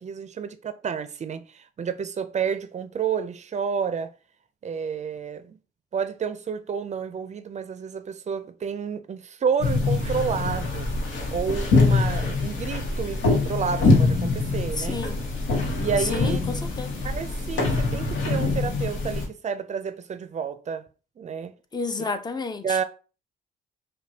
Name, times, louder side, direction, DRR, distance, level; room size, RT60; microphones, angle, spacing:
voice 1, 0.0-4.1 4.6-5.6 5.9-10.9 11.3-15.0 15.8-16.4 17.0-20.8 21.2-21.5 22.0-22.1 22.6-22.8, right 6 dB, 35° right, 0.4 m, -30 dB
sound 1, 9.6-19.3, left 3 dB, 80° left, 1.1 m, -24 dB
voice 2, 14.8-15.2 16.0-17.0 21.7-22.8, left 3 dB, 20° left, 0.5 m, -30 dB
5.2 x 2.3 x 2.8 m
cardioid pair, 90°, 20 cm